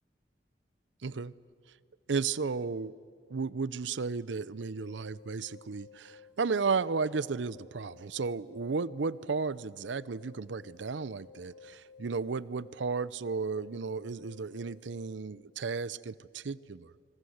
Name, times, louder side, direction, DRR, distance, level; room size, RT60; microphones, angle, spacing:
voice 1, 1.0-1.3 2.1-2.9 3.3-17.0, right 4 dB, 90° right, 19 dB, 0.6 m, -34 dB
sound 1, 4.8-15.2, left 6 dB, 80° left, 2.2 m, -56 dB
26.0 x 23.5 x 8.0 m, 2.2 s
head